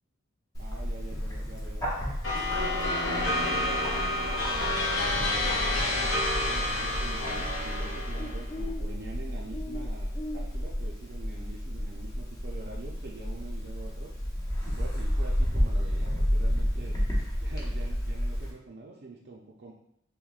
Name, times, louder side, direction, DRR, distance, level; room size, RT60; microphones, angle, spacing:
Bird, 0.5-18.5, equal, 20° left, 0.7 m, -31 dB
voice 1, 0.6-1.8 2.3-14.1 14.6-17.0 17.4-19.7, right 3 dB, 55° right, -3 dB, 0.5 m, -45 dB
sound 1, 2.2-8.5, left 2 dB, 80° left, 1.0 m, -29 dB
5.9 x 2.1 x 2.4 m, 0.72 s
head